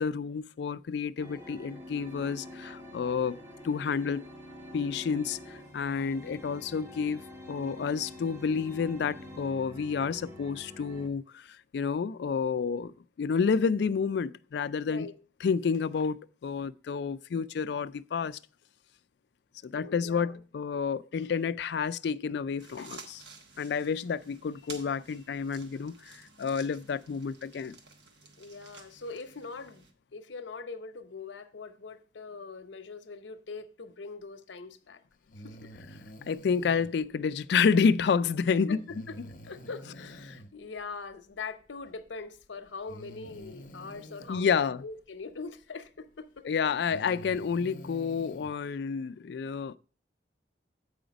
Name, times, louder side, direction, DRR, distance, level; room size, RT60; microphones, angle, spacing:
voice 1, 0.0-3.4 3.6-4.3 4.7-7.2 7.5-15.1 15.4-18.4 19.6-23.2 23.6-27.7 36.3-38.8 44.3-44.8 46.4-49.8, left 6 dB, 65° left, 0.3 m, -29 dB
sound 1, 1.2-11.1, left 1 dB, 15° right, 1.0 m, -46 dB
voice 2, 14.8-15.1 19.7-20.4 28.4-29.9 30.1-35.0 35.4-35.7 38.7-38.8 39.1-39.2 39.4-46.5, left 4 dB, 85° left, 0.7 m, -42 dB
sound 2, 22.6-29.9, right 4 dB, 70° right, 1.1 m, -52 dB
Breathing, 35.3-36.9 38.9-40.5 41.9-42.0 42.9-44.4 46.0-46.1 46.7-48.5, equal, 45° left, 0.7 m, -47 dB
7.8 x 5.0 x 5.1 m
head